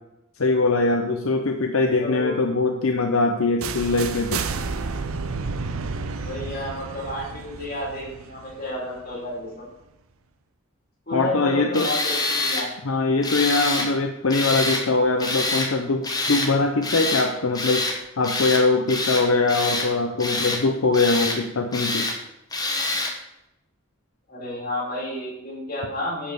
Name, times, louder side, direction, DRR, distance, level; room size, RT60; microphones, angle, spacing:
voice 1, 0.4-4.4 11.1-11.9 12.8-17.9 18.2-22.1, left 3 dB, 80° left, 4 dB, 0.8 m, -22 dB
voice 2, 2.0-2.3 6.2-9.7 11.1-12.7 24.3-26.3, left 1 dB, 45° left, -5 dB, 4.4 m, -31 dB
sound 1, 3.6-9.4, right 4 dB, 85° right, 0.7 m, -31 dB
Tools, 11.7-12.7 13.2-13.9 14.3-14.8 15.2-15.7 16.0-16.5 16.8-17.3 17.5-18.0 18.2-18.6 18.9-19.9 20.2-20.6 20.9-21.4 21.7-22.2 22.5-23.1, left 2 dB, 20° left, 1.3 m, -26 dB
10.0 x 5.3 x 6.5 m, 0.90 s
head